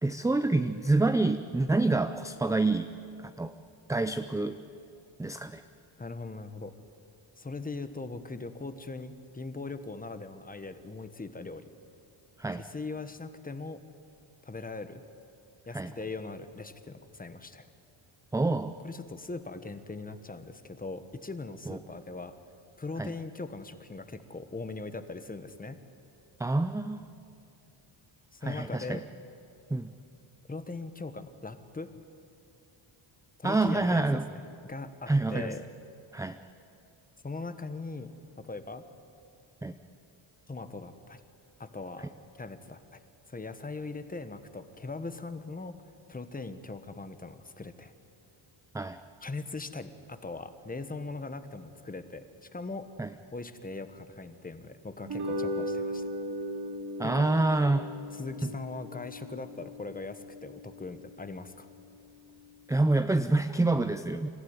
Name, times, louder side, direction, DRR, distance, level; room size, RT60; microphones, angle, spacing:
voice 1, 0.0-2.9 3.2-3.5 3.9-4.6 5.2-5.6 12.4-12.6 15.7-15.9 18.3-18.7 21.7-21.8 23.0-23.1 26.4-27.0 28.4-29.0 29.7-29.9 33.4-34.3 35.1-35.5 36.1-36.4 39.6-39.7 48.7-49.0 53.0-53.1 57.0-57.9 58.4-58.5 62.7-64.3, right 2 dB, 5° right, 9 dB, 0.5 m, -27 dB
voice 2, 6.0-6.8 7.4-11.6 12.5-13.8 14.4-15.0 15.7-17.7 18.8-22.4 22.8-25.8 28.3-29.0 30.5-32.0 33.4-35.7 37.2-38.2 38.4-38.8 40.5-41.2 41.6-43.0 43.3-45.7 46.1-47.9 49.2-52.2 52.5-52.9 53.3-56.0 57.0-57.3 58.1-61.7, left 3 dB, 15° left, 10 dB, 1.2 m, -40 dB
sound 1, 55.0-61.5, equal, 50° right, 2.7 m, -37 dB
26.5 x 14.5 x 9.7 m, 2.7 s
cardioid pair, 125°, 50 cm